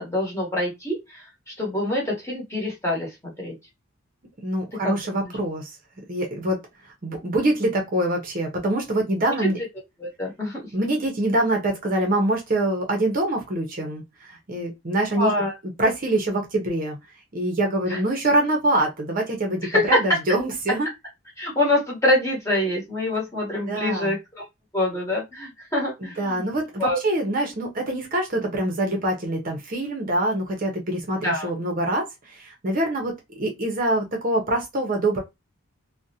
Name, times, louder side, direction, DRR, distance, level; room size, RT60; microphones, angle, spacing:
voice 1, 0.0-3.6 4.8-5.0 9.4-9.5 10.0-10.6 15.2-15.5 17.9-18.0 19.6-20.0 21.4-24.4 24.7-26.5 26.8-27.0 31.2-31.5, left 1 dB, 15° left, 1.0 m, -25 dB
voice 2, 4.4-5.8 6.1-6.6 7.0-9.6 10.7-15.3 15.8-17.0 17.3-20.9 23.7-24.2 26.0-35.2, right 1 dB, 40° right, 0.6 m, -25 dB
2.5 x 2.1 x 2.6 m
head